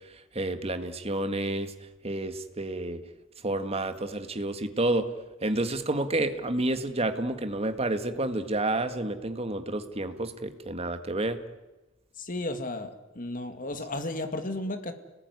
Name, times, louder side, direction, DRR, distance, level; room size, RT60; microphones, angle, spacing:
voice 1, 0.4-1.7 2.0-3.0 3.4-5.1 5.4-11.4, right 2 dB, 30° right, 9 dB, 1.9 m, -29 dB
voice 2, 12.2-14.9, left 2 dB, 40° left, 8 dB, 2.4 m, -34 dB
30.0 x 19.5 x 9.7 m, 1.1 s
head